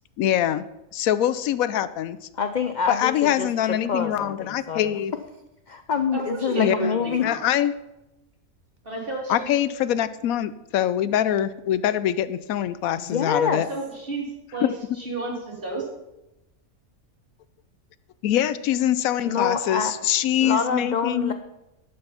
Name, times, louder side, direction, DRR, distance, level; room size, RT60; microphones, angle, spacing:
voice 1, 0.2-0.6 0.9-2.2 2.9-5.1 6.6-6.7 7.2-7.7 9.3-13.7 18.2-21.3, left 11 dB, 80° left, 15 dB, 1.0 m, -24 dB
voice 2, 2.3-5.0 5.7-7.3 13.0-13.6 19.2-19.9 20.4-21.3, left 6 dB, 55° left, 8 dB, 0.5 m, -26 dB
voice 3, 6.1-7.4 8.8-9.5 13.7-14.7 15.0-15.9, right 3 dB, 40° right, -2 dB, 3.1 m, -31 dB
11.5 x 8.7 x 5.6 m, 0.94 s
omnidirectional pair, 1.5 m